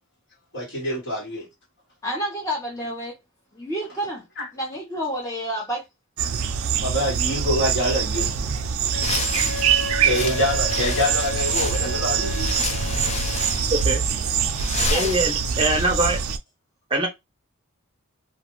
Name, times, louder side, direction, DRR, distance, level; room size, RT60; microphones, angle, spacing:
voice 1, 0.5-1.5 4.4-4.5 6.8-8.3 10.0-12.3, equal, 55° left, 1.4 m, -25 dB
voice 2, 2.0-3.2 3.5-4.2 4.5-5.8 14.8-15.1, equal, 15° left, 0.7 m, -29 dB
sound 1, 6.2-16.4, right 7 dB, 75° right, 0.4 m, -24 dB
Wind instrument woodwind instrument, 8.9-13.6, left 3 dB, 75° left, 0.9 m, -34 dB
sound 2, 8.9-15.8, left 4 dB, 30° left, 0.3 m, -31 dB
voice 3, 13.7-14.3 14.9-16.2 16.9-17.1, right 1 dB, 25° right, 0.6 m, -23 dB
2.4 x 2.3 x 3.0 m
head